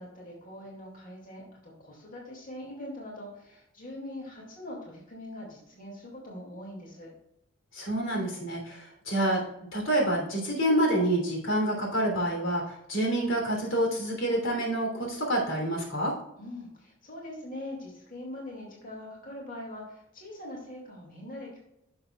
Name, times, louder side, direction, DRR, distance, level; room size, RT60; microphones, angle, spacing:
voice 1, 0.0-7.1 16.4-21.6, left 1 dB, 45° left, -2 dB, 2.3 m, -42 dB
voice 2, 7.7-9.4 9.7-16.1, right 1 dB, 90° left, 0 dB, 3.1 m, -27 dB
10.5 x 7.0 x 2.3 m, 0.82 s
head